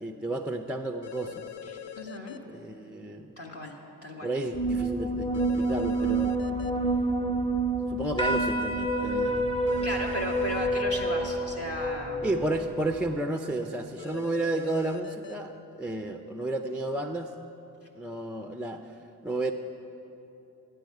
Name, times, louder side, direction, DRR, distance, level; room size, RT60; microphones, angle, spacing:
voice 1, 0.0-1.5 2.5-3.3 4.2-6.4 7.9-9.5 12.2-17.3 18.0-19.0 19.2-19.5, right 2 dB, 5° right, 6 dB, 0.4 m, -32 dB
sound 1, 1.0-2.4 5.3-6.7 9.7-11.0 14.0-15.3, left 9 dB, 75° left, 0.6 m, -42 dB
voice 2, 1.7-2.4 3.4-3.8 4.0-4.3 9.8-12.3, equal, 35° left, 0 dB, 1.6 m, -35 dB
sound 2, 4.5-13.2, right 2 dB, 15° left, 1.1 m, -28 dB
13.0 x 9.2 x 4.8 m, 2.9 s
cardioid pair, 65°, 41 cm